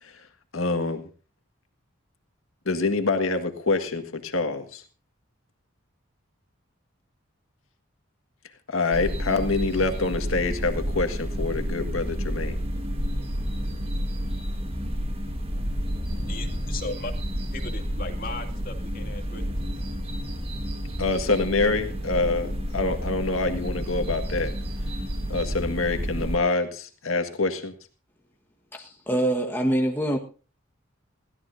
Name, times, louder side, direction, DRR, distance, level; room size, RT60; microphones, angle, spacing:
voice 1, 0.5-1.1 2.6-4.8 8.7-12.6 21.0-24.5 25.3-27.7, left 3 dB, 85° left, 6 dB, 1.7 m, -26 dB
sound 1, 8.9-26.4, equal, 30° right, 1.7 m, -30 dB
voice 2, 16.1-17.1 17.5-19.5, left 2 dB, 45° left, 4 dB, 2.5 m, -37 dB
voice 3, 28.7-30.2, right 1 dB, 10° left, 1 dB, 1.4 m, -25 dB
22.0 x 16.0 x 2.7 m, 0.37 s
head